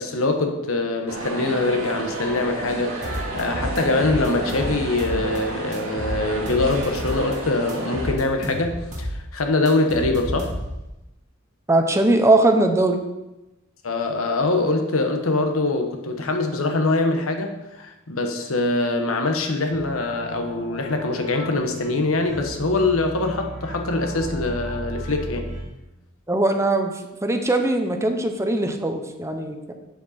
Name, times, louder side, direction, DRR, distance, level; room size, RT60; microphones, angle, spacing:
voice 1, 0.0-10.5 13.8-25.5, left 2 dB, 80° left, 5 dB, 1.1 m, -23 dB
sound 1, 1.1-8.1, right 2 dB, 90° right, 2.1 m, -31 dB
sound 2, 3.0-5.4 5.7-7.4 7.7-10.9, equal, 35° right, 1.6 m, -31 dB
voice 2, 11.7-13.0 26.3-26.9 27.2-29.7, right 2 dB, 15° right, 5 dB, 0.7 m, -20 dB
sound 3, 19.7-25.6, equal, 60° left, 2.3 m, -36 dB
8.1 x 7.7 x 4.3 m, 0.98 s
head